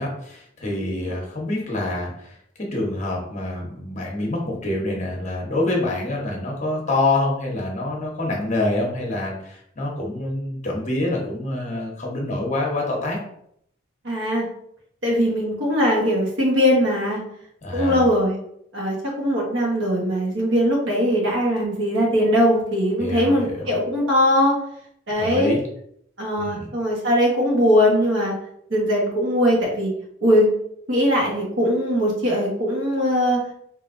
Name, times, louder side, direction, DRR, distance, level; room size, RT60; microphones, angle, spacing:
voice 1, 0.0-13.2 17.6-18.0 23.0-23.7 25.2-25.6 26.4-26.7, left 2 dB, 40° left, -1 dB, 1.0 m, -26 dB
voice 2, 14.0-14.5 15.0-17.2 17.7-18.4 18.7-24.6 25.1-25.5 26.2-28.3 28.7-29.9 30.2-30.5 30.9-33.4, equal, 70° right, -2 dB, 1.2 m, -20 dB
4.7 x 2.7 x 2.6 m, 0.70 s
head